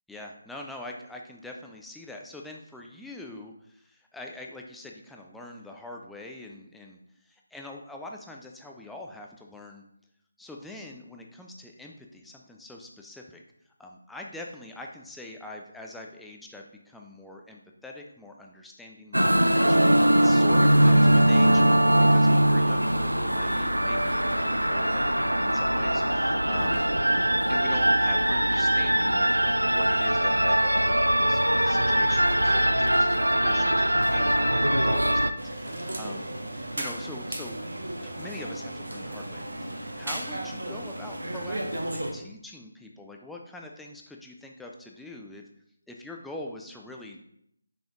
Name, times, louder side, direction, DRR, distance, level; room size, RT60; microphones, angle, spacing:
voice 1, 0.1-9.8 10.4-13.4 13.8-26.9 27.5-37.6 38.0-45.4 45.9-47.2, left 2 dB, ahead, 0 dB, 0.5 m, -44 dB
sound 1, 19.1-35.3, right 1 dB, 85° right, 0.4 m, -21 dB
sound 2, 35.4-42.1, right 1 dB, 65° right, 1.1 m, -35 dB
5.8 x 5.0 x 3.8 m, 0.72 s
figure-of-eight pair, 155°, 0 cm